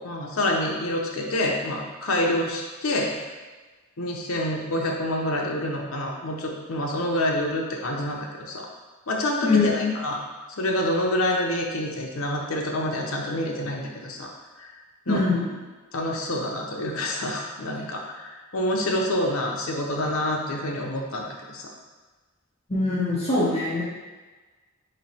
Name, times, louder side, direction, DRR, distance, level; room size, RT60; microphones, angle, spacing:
voice 1, 0.0-3.2 4.0-8.7 9.1-10.2 10.6-14.3 14.6-14.7 15.1-15.2 15.9-21.7, left 1 dB, 70° left, 0 dB, 0.8 m, -27 dB
voice 2, 9.4-9.9 15.1-15.5 22.7-23.8, left 3 dB, 30° left, -7 dB, 1.0 m, -23 dB
4.0 x 3.2 x 4.2 m, 1.3 s
head